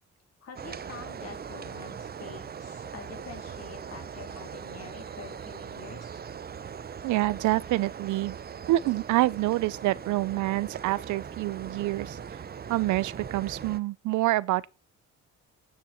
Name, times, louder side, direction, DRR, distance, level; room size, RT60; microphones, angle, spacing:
voice 1, 0.4-6.2, left 6 dB, 55° left, 3.4 m, -46 dB
sound 1, 0.6-13.8, right 7 dB, 30° right, 0.6 m, -40 dB
voice 2, 7.0-8.4 8.7-12.2 12.7-14.7, right 17 dB, 80° right, 0.5 m, -27 dB
10.0 x 6.8 x 4.4 m
cardioid pair, 90°, 30 cm